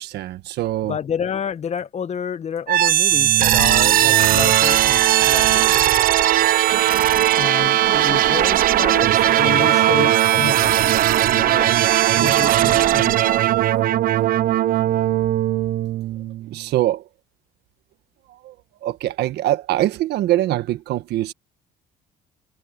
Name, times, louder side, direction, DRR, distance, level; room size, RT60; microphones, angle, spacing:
voice 1, 0.0-1.0 14.5-14.6 16.5-17.1 18.3-18.5 18.8-21.3, right 14 dB, 75° right, 1.5 m, -23 dB
voice 2, 0.8-5.8 7.3-11.1 11.3-11.8 12.2-13.4, left 8 dB, 40° left, 1.1 m, -29 dB
sound 1, 2.7-16.5, right 13 dB, 60° right, 0.6 m, -18 dB
cardioid pair, 110°, 17 cm